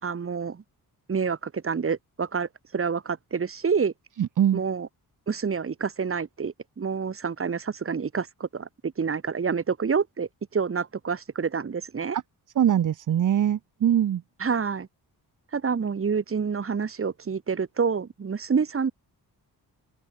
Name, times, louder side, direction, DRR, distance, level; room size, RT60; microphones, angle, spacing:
voice 1, 0.0-0.6 1.1-3.9 4.5-4.9 5.3-12.2 14.4-14.9 15.5-18.9, right 6 dB, 35° right, 4.4 m, -28 dB
voice 2, 4.2-4.6 12.6-14.2, right 10 dB, 55° right, 1.2 m, -22 dB
open air
wide cardioid pair, 165°, 38 cm